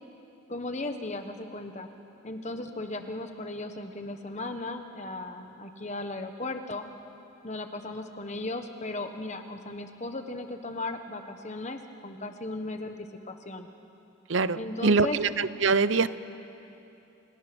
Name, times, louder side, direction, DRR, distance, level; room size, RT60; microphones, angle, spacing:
voice 1, 0.5-1.9 2.2-6.8 7.4-13.0 13.3-13.7 14.6-15.2, left 2 dB, 35° left, 6 dB, 1.3 m, -36 dB
voice 2, 14.3-16.1, right 4 dB, 60° right, 15 dB, 0.7 m, -24 dB
29.5 x 28.5 x 6.2 m, 2.9 s
head